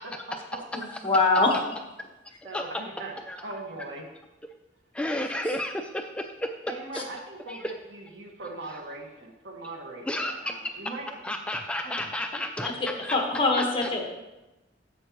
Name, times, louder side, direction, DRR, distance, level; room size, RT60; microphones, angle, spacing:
voice 1, 0.0-0.6 2.4-4.0 6.7-11.1 11.8-12.0 13.5-13.6, right 2 dB, 85° right, 1 dB, 1.6 m, -40 dB
voice 2, 0.7-1.5 5.4-5.5 6.9-7.0 12.6-14.0, left 3 dB, 30° left, 1 dB, 1.4 m, -24 dB
voice 3, 4.9-6.5 7.5-7.7 10.1-10.3 11.2-13.2 13.5-14.0, left 1 dB, 5° left, 4 dB, 0.4 m, -32 dB
11.0 x 7.5 x 3.1 m, 1.0 s
head